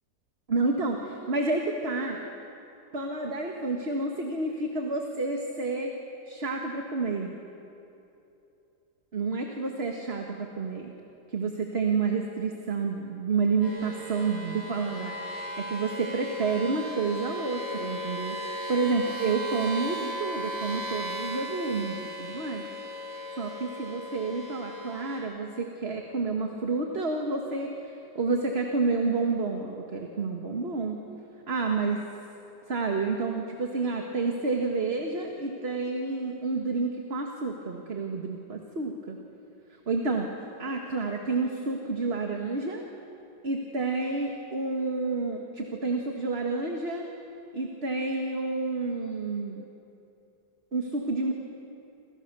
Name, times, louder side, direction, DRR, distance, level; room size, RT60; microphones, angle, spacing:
voice 1, 0.5-2.2 2.9-5.9 6.3-7.3 9.1-10.9 11.3-22.6 23.4-27.7 28.1-31.0 31.5-32.0 32.7-39.2 39.9-40.3 40.6-42.8 43.4-47.1 47.5-49.7 50.7-51.3, right 3 dB, 35° right, 2 dB, 1.8 m, -29 dB
sound 1, 13.6-25.2, equal, 10° right, 6.7 m, -37 dB
28.0 x 28.0 x 6.9 m, 2.8 s
omnidirectional pair, 1.9 m